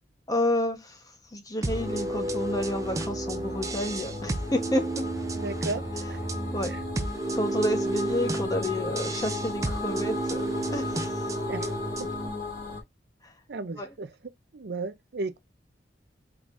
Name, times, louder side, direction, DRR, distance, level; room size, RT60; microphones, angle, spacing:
voice 1, 0.3-1.0 1.3-5.0 6.5-6.7 7.3-10.4 10.7-11.2 13.8-13.9, left 1 dB, 20° left, 1.1 m, -30 dB
sound 1, 1.6-12.3, right 2 dB, 20° right, 0.6 m, -32 dB
sound 2, 1.7-12.8, left 3 dB, 50° left, 2.1 m, -37 dB
voice 2, 5.3-5.8 6.1-6.2 6.7-6.8 11.5-12.1 13.5-15.4, right 3 dB, 65° right, 0.6 m, -35 dB
4.6 x 3.8 x 2.6 m
head